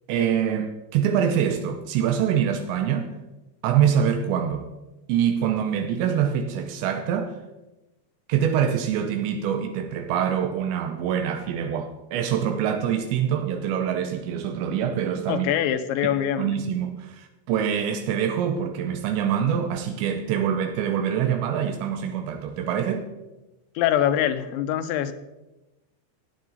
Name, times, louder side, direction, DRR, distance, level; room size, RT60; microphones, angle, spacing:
voice 1, 0.1-3.1 3.6-4.7 5.1-7.3 8.3-15.5 16.4-23.1, right 8 dB, 85° right, 3.0 m, -25 dB
voice 2, 15.3-16.5 23.8-25.1, left 10 dB, 90° left, 3.0 m, -24 dB
14.5 x 9.4 x 4.0 m
omnidirectional pair, 5.1 m